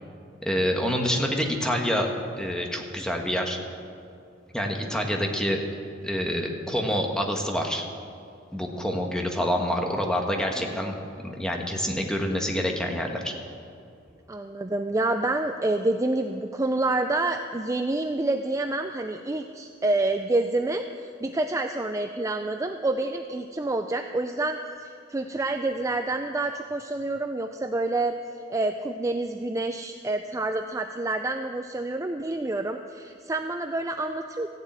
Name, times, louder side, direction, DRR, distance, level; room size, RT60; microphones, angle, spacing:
voice 1, 0.4-2.1 2.4-3.6 4.5-5.6 6.0-7.8 8.5-10.9 11.4-13.3, equal, 5° left, 1 dB, 1.4 m, -27 dB
voice 2, 10.6-10.9 14.3-20.8 21.2-28.1 28.5-34.5, right 2 dB, 15° right, 6 dB, 0.4 m, -28 dB
14.5 x 7.4 x 8.7 m, 2.4 s
head